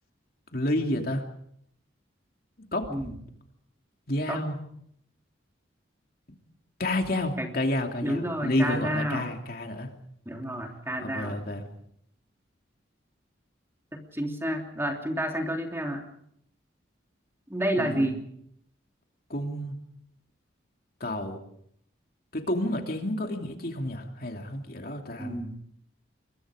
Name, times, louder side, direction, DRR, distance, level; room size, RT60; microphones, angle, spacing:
voice 1, 0.5-1.2 2.7-2.9 4.1-4.6 6.8-9.9 11.0-11.6 17.8-18.1 19.3-19.8 21.0-21.4 22.3-25.4, left 1 dB, 50° left, 3 dB, 2.8 m, -30 dB
voice 2, 8.0-9.3 10.2-11.4 13.9-16.0 17.5-18.2 25.2-25.6, equal, 15° right, 2 dB, 3.2 m, -30 dB
27.5 x 23.0 x 5.1 m, 0.70 s
head